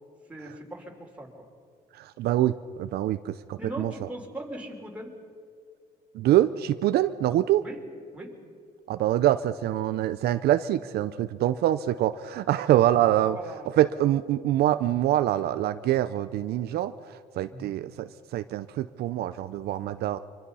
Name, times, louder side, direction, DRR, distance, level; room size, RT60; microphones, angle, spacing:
voice 1, 0.3-1.5 3.6-5.2 7.6-7.8 8.1-8.4 13.3-13.8 17.5-17.7, right 1 dB, 10° right, 0 dB, 4.0 m, -40 dB
voice 2, 1.9-4.1 6.1-7.6 8.9-13.4 13.7-20.2, right 13 dB, 70° right, 12 dB, 0.6 m, -25 dB
25.0 x 25.0 x 5.6 m, 2.2 s
cardioid pair, 110°, 17 cm